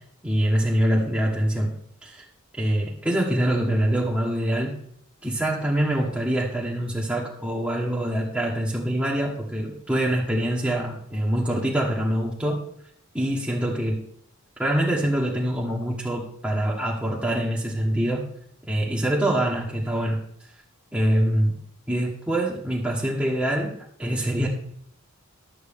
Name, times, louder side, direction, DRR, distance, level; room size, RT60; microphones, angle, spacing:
voice 1, 0.2-1.7 2.0-2.2 2.6-4.7 5.2-12.6 13.1-14.0 14.6-18.2 18.6-20.2 20.9-21.5 21.9-23.7 24.0-24.5, right 1 dB, 5° right, -5 dB, 1.2 m, -24 dB
11.5 x 7.8 x 3.6 m, 0.66 s
head